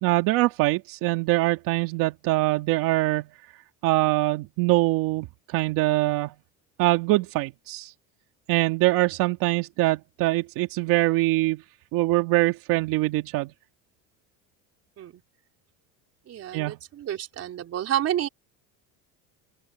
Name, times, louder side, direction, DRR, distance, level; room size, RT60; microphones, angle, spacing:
voice 1, 0.0-3.3 3.8-6.3 6.8-7.9 8.5-11.6 11.9-13.5 16.5-16.8, right 19 dB, 65° right, 2.3 m, -23 dB
voice 2, 16.3-18.3, right 11 dB, 40° right, 4.3 m, -29 dB
open air
supercardioid pair, 130°, 37 cm